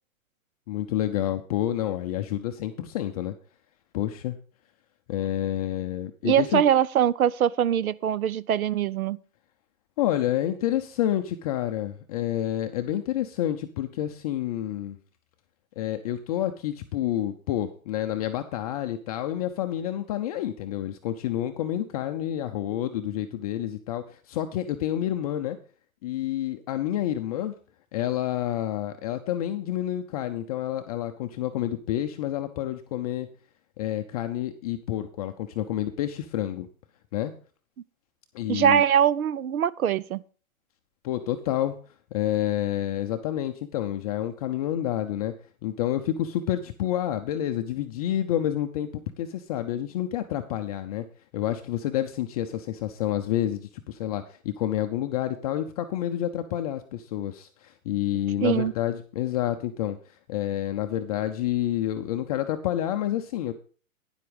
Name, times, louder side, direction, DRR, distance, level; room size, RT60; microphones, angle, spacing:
voice 1, 0.7-3.3 3.9-4.4 5.1-6.6 10.0-15.0 15.8-25.6 26.0-27.5 27.9-33.3 33.8-36.7 37.1-37.3 38.3-38.8 41.0-41.8 42.1-45.3 45.6-51.0 51.3-60.0 60.3-63.5, left 12 dB, 25° left, 0.5 m, -29 dB
voice 2, 6.2-9.2 38.5-40.2 58.4-58.7, right 9 dB, 80° right, 0.7 m, -22 dB
9.9 x 7.5 x 5.1 m
hypercardioid pair, 130°, 43 cm